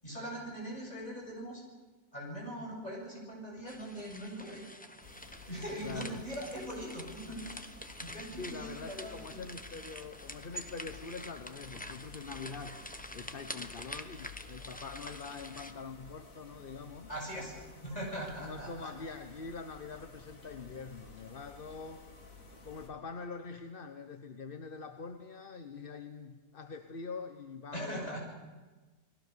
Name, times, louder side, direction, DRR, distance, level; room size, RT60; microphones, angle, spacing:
voice 1, 0.0-1.6 2.1-4.6 5.5-7.7 8.0-9.4 17.1-17.6 17.8-18.9 27.7-28.2, equal, 25° left, -2 dB, 7.7 m, -41 dB
sound 1, 3.7-15.7, left 1 dB, 5° left, 0.8 m, -47 dB
sound 2, 5.0-22.9, left 4 dB, 55° left, 3.1 m, -53 dB
voice 2, 5.8-6.2 8.4-12.8 13.1-17.1 18.4-22.0 22.5-28.2, left 4 dB, 40° left, 8 dB, 1.1 m, -44 dB
30.0 x 20.0 x 6.9 m, 1.3 s
omnidirectional pair, 1.7 m